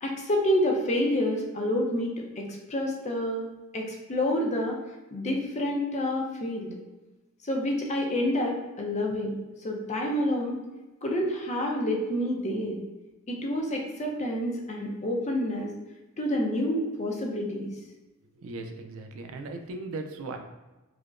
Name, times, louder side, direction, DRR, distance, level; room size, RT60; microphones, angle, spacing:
voice 1, 0.0-3.5 3.7-4.8 5.1-6.8 7.5-9.3 9.6-10.6 11.0-12.8 13.3-15.7 16.2-17.7, left 1 dB, 30° left, 0 dB, 0.6 m, -28 dB
voice 2, 18.3-20.4, right 3 dB, 65° right, 6 dB, 0.4 m, -37 dB
4.8 x 2.1 x 2.4 m, 1.1 s
head